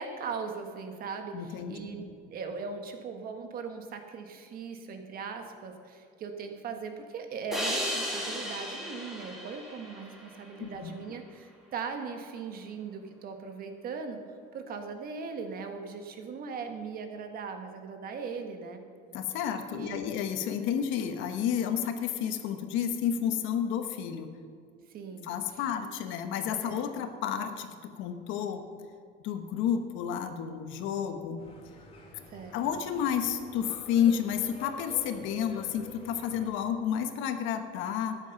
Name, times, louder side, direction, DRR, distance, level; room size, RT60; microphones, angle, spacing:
voice 1, 0.0-14.2 14.5-18.8 19.7-20.1 24.9-25.6 26.6-27.0 32.3-32.6, right 5 dB, 50° right, 6 dB, 1.5 m, -39 dB
voice 2, 1.3-1.8 2.0-2.1 10.6-10.9 19.1-24.3 25.2-28.6 29.2-31.4 32.1-32.2 32.5-38.2, left 8 dB, 80° left, 7 dB, 1.2 m, -31 dB
sound 1, 7.5-10.8, equal, ahead, 2.3 m, -35 dB
sound 2, 31.4-36.5, left 2 dB, 30° left, 2.4 m, -48 dB
13.0 x 10.5 x 5.9 m, 2.2 s
cardioid pair, 160°, 20 cm